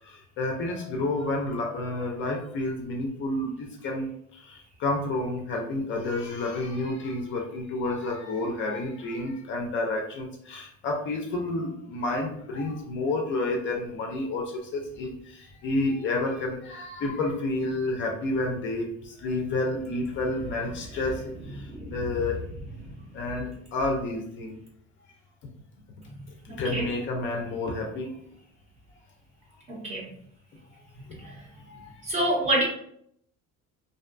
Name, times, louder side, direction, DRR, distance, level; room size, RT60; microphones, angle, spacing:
voice 1, 0.0-22.4 23.1-24.6 26.4-28.1 31.1-31.4 31.7-31.9, left 2 dB, 40° left, 1 dB, 0.4 m, -30 dB
voice 2, 21.6-21.9 26.5-26.9 29.7-30.1 31.2-31.3 32.0-32.6, right 1 dB, 25° right, -3 dB, 0.6 m, -27 dB
2.6 x 2.2 x 2.5 m, 0.68 s
cardioid pair, 175°, 30 cm